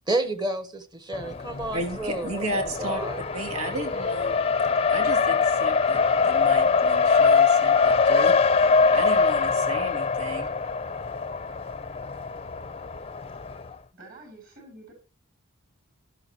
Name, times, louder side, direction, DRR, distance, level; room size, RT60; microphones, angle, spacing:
voice 1, 0.1-3.2, right 2 dB, 20° right, 1.2 m, -30 dB
Race car auto racing, 1.1-13.8, left 5 dB, 25° left, 0.6 m, -23 dB
voice 2, 1.7-3.0 3.3-4.4 4.9-8.3 8.9-10.5, right 1 dB, 85° right, 2.9 m, -34 dB
voice 3, 13.4-14.9, right 2 dB, 40° right, 7.2 m, -49 dB
12.5 x 11.0 x 3.0 m
head